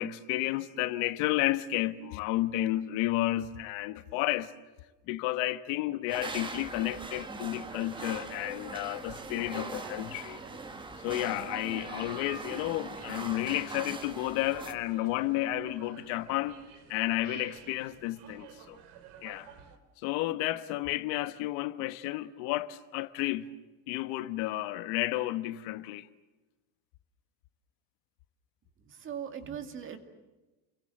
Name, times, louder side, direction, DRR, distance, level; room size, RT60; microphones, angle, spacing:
voice 1, 0.0-4.5 5.1-10.4 11.0-16.6 16.9-18.8 19.2-19.5 20.0-23.5 23.9-26.1, left 16 dB, 70° left, 1.4 m, -32 dB
sound 1, 6.1-14.7, right 3 dB, 10° right, 1.4 m, -41 dB
sound 2, 6.9-19.8, right 8 dB, 80° right, 3.7 m, -53 dB
voice 2, 28.9-30.0, right 8 dB, 25° right, 2.2 m, -39 dB
30.0 x 22.5 x 7.7 m
cardioid pair, 175°, 44 cm